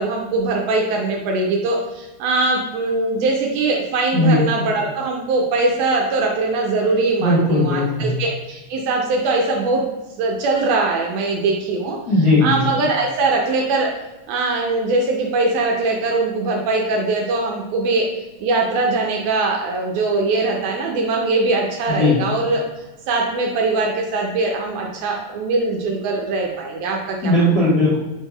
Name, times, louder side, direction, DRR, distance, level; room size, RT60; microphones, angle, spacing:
voice 1, 0.0-9.8 10.2-12.0 12.4-13.9 14.3-18.1 18.4-22.6 23.1-27.5, right 3 dB, 80° right, 0 dB, 1.8 m, -21 dB
voice 2, 4.1-4.4 7.2-8.1 12.1-12.7 21.9-22.2 27.2-28.0, left 1 dB, 75° left, -11 dB, 0.9 m, -17 dB
5.2 x 3.2 x 2.2 m, 1.1 s
omnidirectional pair, 3.8 m